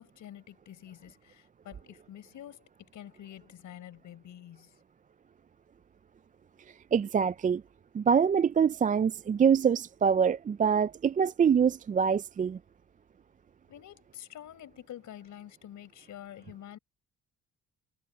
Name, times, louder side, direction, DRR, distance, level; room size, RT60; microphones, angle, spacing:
voice 1, 0.0-4.7 13.7-16.8, left 11 dB, 75° left, 5.6 m, -48 dB
voice 2, 6.9-7.6 7.9-12.6, right 7 dB, 25° right, 0.4 m, -25 dB
cardioid pair, 90°, 30 cm